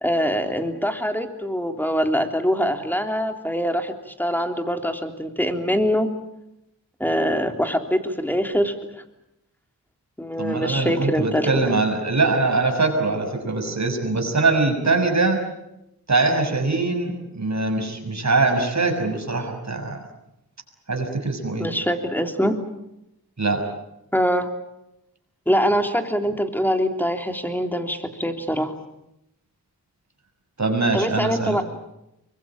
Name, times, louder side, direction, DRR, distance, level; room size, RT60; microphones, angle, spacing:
voice 1, 0.0-6.1 7.0-9.0 10.2-11.7 21.6-22.5 24.1-24.5 25.5-28.7 30.9-31.6, equal, 5° left, 6 dB, 3.4 m, -23 dB
voice 2, 10.4-15.4 16.1-20.0 20.9-21.7 23.4-23.6 30.6-31.6, right 3 dB, 45° right, 4 dB, 6.5 m, -22 dB
24.5 x 22.0 x 8.9 m, 0.87 s
cardioid pair, 50°, 38 cm